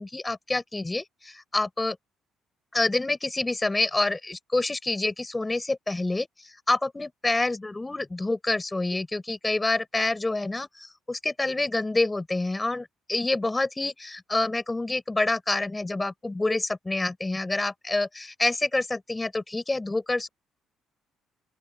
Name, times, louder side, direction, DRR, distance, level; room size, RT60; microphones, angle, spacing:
voice 1, 0.0-2.0 2.7-20.3, left 2 dB, 10° left, 4.0 m, -27 dB
open air
cardioid pair, 150°, 0 cm